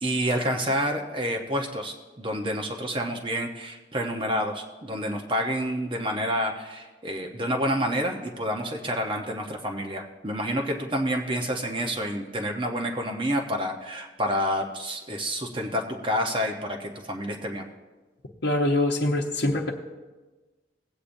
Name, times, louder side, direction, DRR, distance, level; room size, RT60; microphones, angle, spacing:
voice 1, 0.0-17.6, equal, 30° right, 2 dB, 0.8 m, -28 dB
voice 2, 18.4-19.7, left 1 dB, 70° left, -3 dB, 0.8 m, -24 dB
18.5 x 8.4 x 2.6 m, 1.2 s
head